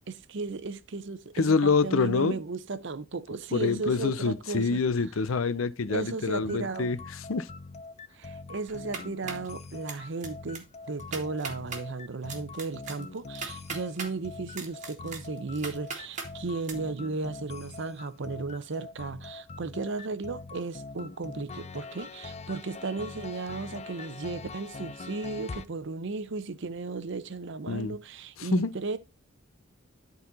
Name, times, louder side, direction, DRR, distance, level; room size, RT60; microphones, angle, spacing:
voice 1, 0.1-4.8 5.9-6.9 8.1-29.0, right 3 dB, 60° right, 0.7 m, -35 dB
voice 2, 1.3-2.4 3.5-7.5 27.7-28.0 28.4-28.7, left 4 dB, 85° left, 0.6 m, -26 dB
sound 1, 6.4-25.7, left 3 dB, 30° left, 0.4 m, -44 dB
sound 2, 8.7-9.5 9.9-10.3 10.5-10.6 11.0-11.8 12.3-14.1 14.5-16.3 16.6-16.7, right 5 dB, 35° right, 1.8 m, -38 dB
11.5 x 4.1 x 4.0 m
head